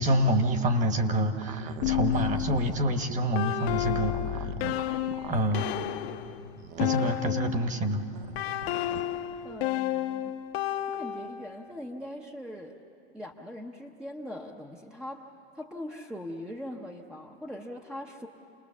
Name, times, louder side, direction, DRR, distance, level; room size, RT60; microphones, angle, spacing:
voice 1, 0.0-4.5 5.3-5.7 6.8-8.0, right 1 dB, 25° right, 7 dB, 1.3 m, -27 dB
sound 1, 1.4-3.0 3.9-5.7 6.6-7.3 8.1-9.0, right 8 dB, 40° right, 0.7 m, -42 dB
sound 2, 1.8-7.8 8.3-11.6, left 12 dB, 65° left, 1.0 m, -31 dB
voice 2, 9.4-10.4 10.9-12.8 13.1-15.3 15.5-18.3, left 1 dB, ahead, 1 dB, 0.7 m, -41 dB
29.0 x 20.0 x 7.1 m, 2.8 s
supercardioid pair, 150°, 33 cm